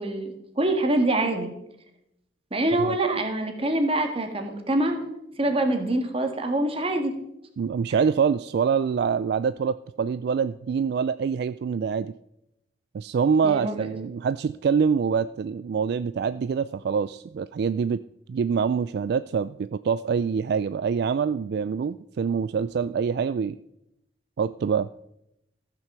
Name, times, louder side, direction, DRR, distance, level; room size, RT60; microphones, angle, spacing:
voice 1, 0.0-1.5 2.5-5.0 5.4-7.2 13.4-13.9, right 1 dB, 30° right, 5 dB, 1.7 m, -25 dB
voice 2, 2.8-3.2 7.6-12.1 12.9-18.0 18.3-23.6 24.4-24.9, right 6 dB, 60° right, 14 dB, 0.3 m, -25 dB
14.5 x 6.0 x 6.7 m, 0.83 s
head